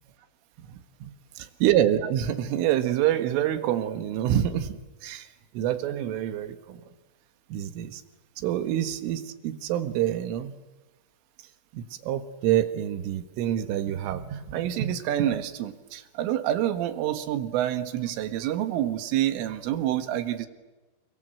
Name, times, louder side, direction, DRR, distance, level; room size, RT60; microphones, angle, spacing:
voice 1, 0.7-1.1 1.6-5.3 5.5-6.8 7.5-8.0 8.4-10.6 11.7-20.5, right 11 dB, 80° right, 10 dB, 4.1 m, -27 dB
28.5 x 25.0 x 7.7 m, 1.2 s
omnidirectional pair, 5.7 m